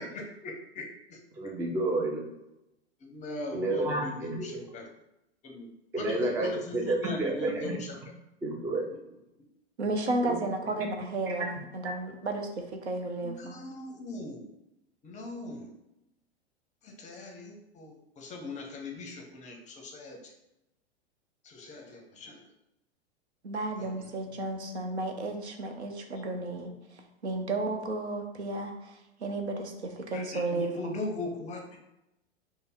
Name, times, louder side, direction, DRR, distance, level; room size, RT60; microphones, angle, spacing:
voice 1, 0.0-1.2 3.0-4.9 5.4-5.7 6.0-8.0 8.9-9.0 13.2-14.5 15.0-15.7 16.8-20.3 21.4-22.4 23.8-24.1 24.3-24.4 30.1-31.8, left 2 dB, 20° left, 2 dB, 0.6 m, -40 dB
voice 2, 1.4-2.3 3.5-4.5 6.0-7.8 8.4-8.8 10.2-10.4 11.8-11.9, right 2 dB, 10° right, 0 dB, 0.3 m, -30 dB
voice 3, 9.8-13.6 23.4-26.7 27.2-31.0, right 2 dB, 85° right, 4 dB, 0.7 m, -33 dB
3.3 x 2.0 x 4.1 m, 0.90 s
hypercardioid pair, 100°, 32 cm